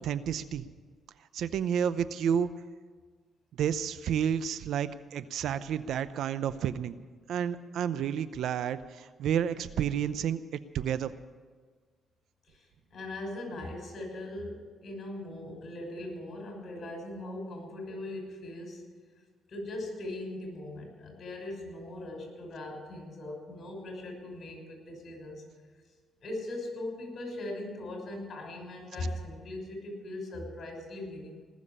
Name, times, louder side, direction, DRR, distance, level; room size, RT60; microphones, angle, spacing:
voice 1, 0.0-0.6 1.3-2.5 3.6-7.0 7.3-11.1, right 8 dB, 75° right, 14 dB, 0.6 m, -30 dB
voice 2, 12.5-18.8 19.5-25.4 26.2-31.4, left 1 dB, 50° left, 1 dB, 6.1 m, -40 dB
19.0 x 7.3 x 9.9 m, 1.5 s
cardioid pair, 90°, 0 cm